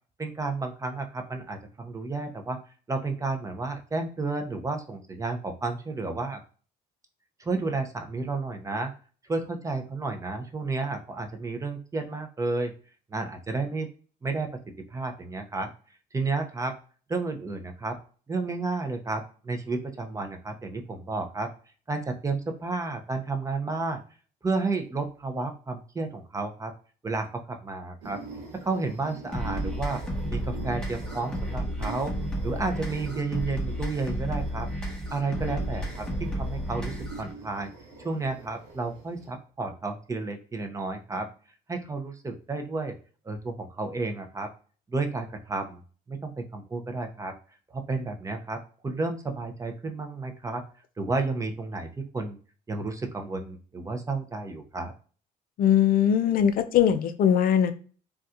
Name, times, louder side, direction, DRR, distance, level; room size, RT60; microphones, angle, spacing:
voice 1, 0.2-2.6 2.9-6.4 7.4-8.9 9.3-12.7 13.1-13.9 14.2-14.5 14.9-15.7 16.1-16.8 17.1-18.0 18.3-21.5 21.9-24.0 24.4-26.7 27.0-28.2 28.5-30.0 30.3-32.1 32.4-34.7 35.1-37.7 38.0-41.3 41.7-42.9 43.2-44.5 44.9-45.8 46.1-47.3 47.7-50.6 51.0-52.4 52.7-54.9, right 3 dB, 20° right, 5 dB, 0.5 m, -31 dB
sound 1, 28.0-39.3, right 3 dB, 80° right, 0.9 m, -44 dB
sound 2, 29.3-37.3, equal, 5° left, 1.3 m, -32 dB
voice 2, 55.6-57.7, left 9 dB, 60° left, 9 dB, 0.4 m, -21 dB
4.0 x 2.2 x 2.5 m, 0.40 s
cardioid pair, 110°, 17 cm